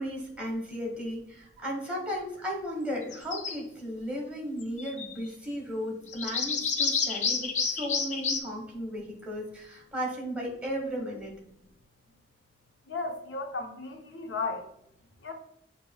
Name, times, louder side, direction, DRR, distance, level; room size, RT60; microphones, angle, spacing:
voice 1, 0.0-11.3, equal, 5° right, -2 dB, 1.3 m, -35 dB
sound 1, 3.1-3.6 4.6-5.2 6.1-8.4, left 5 dB, 40° left, 0.4 m, -29 dB
voice 2, 12.9-14.7 15.2-15.3, left 3 dB, 90° left, 4 dB, 0.7 m, -34 dB
7.4 x 2.9 x 2.3 m, 0.76 s
head